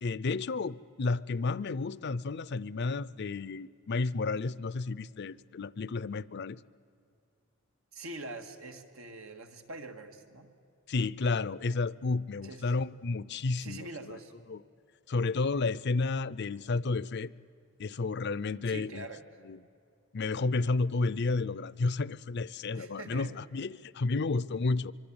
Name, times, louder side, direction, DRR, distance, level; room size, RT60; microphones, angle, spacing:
voice 1, 0.0-6.6 10.9-13.9 14.5-14.6 15.1-17.3 17.8-19.1 19.4-19.6 20.1-24.9, left 3 dB, 55° left, 0.5 m, -31 dB
voice 2, 7.9-10.5 12.4-12.8 13.6-14.3 18.6-19.2 22.7-23.3, right 2 dB, 90° right, 2.0 m, -44 dB
25.0 x 24.0 x 8.8 m
head